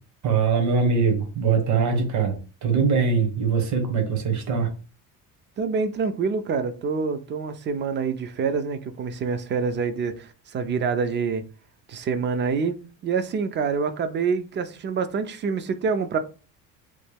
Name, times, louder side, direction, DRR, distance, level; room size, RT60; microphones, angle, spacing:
voice 1, 0.2-4.7, right 5 dB, 55° right, 1.1 m, -22 dB
voice 2, 5.6-11.4 11.9-16.2, right 5 dB, 30° right, 0.4 m, -26 dB
3.2 x 2.2 x 3.4 m
cardioid pair, 120°, 35 cm